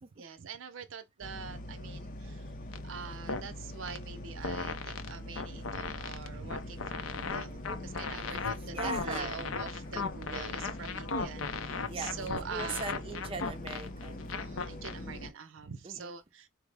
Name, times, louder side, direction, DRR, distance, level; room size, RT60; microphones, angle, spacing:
voice 1, 0.2-2.4 2.8-12.9 14.3-16.5, right 6 dB, 75° right, 0.6 m, -45 dB
sound 1, 1.2-15.3, left 1 dB, 45° left, 0.6 m, -43 dB
sound 2, 2.7-2.8 3.3-3.5 3.9-4.0 4.4-15.0, left 4 dB, 85° left, 0.6 m, -36 dB
voice 2, 8.7-9.5 11.8-14.3 15.8-16.1, right 4 dB, 30° right, 0.5 m, -40 dB
4.5 x 2.1 x 3.3 m
head